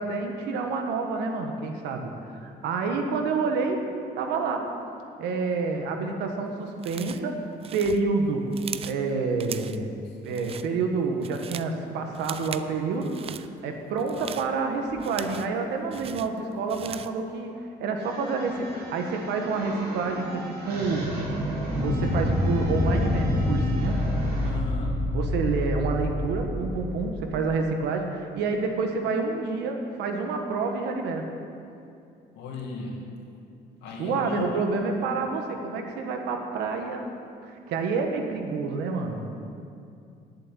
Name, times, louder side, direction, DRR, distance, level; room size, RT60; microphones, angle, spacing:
voice 1, 0.0-3.8 4.1-4.7 5.2-7.4 7.7-8.5 8.8-9.9 10.2-17.5 17.8-21.1 21.8-24.0 25.1-31.3 34.0-37.1 37.4-39.2, right 4 dB, 85° right, 4 dB, 1.5 m, -28 dB
sound 1, 6.8-7.3 7.6-9.0 9.4-9.9 10.2-10.7 11.1-11.7 12.1-12.7 13.0-13.5 14.0-15.6 15.9-17.2, right 8 dB, 35° right, 0.4 m, -39 dB
sound 2, 18.0-24.5, right 1 dB, 65° right, 3.0 m, -35 dB
sound 3, 21.7-27.4, left 1 dB, 5° left, 1.9 m, -27 dB
voice 2, 24.4-25.0 32.3-33.0 33.8-34.5, left 4 dB, 90° left, 0 dB, 2.2 m, -35 dB
10.5 x 7.6 x 8.9 m, 2.5 s
cardioid pair, 110°, 17 cm